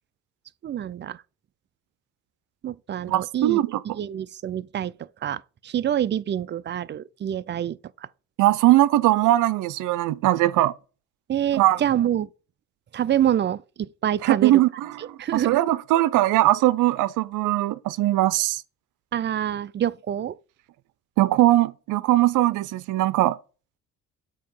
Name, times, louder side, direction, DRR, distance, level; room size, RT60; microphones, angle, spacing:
voice 1, 0.6-1.2 2.6-4.9 5.2-7.8 11.3-12.3 12.9-14.5 15.2-15.6 19.1-20.4, right 10 dB, 40° right, 0.4 m, -26 dB
voice 2, 3.1-3.8 8.4-10.7 11.6-11.8 14.2-18.6 21.2-23.4, right 15 dB, 85° right, 0.6 m, -20 dB
8.5 x 2.9 x 5.4 m
cardioid pair, 90°, 30 cm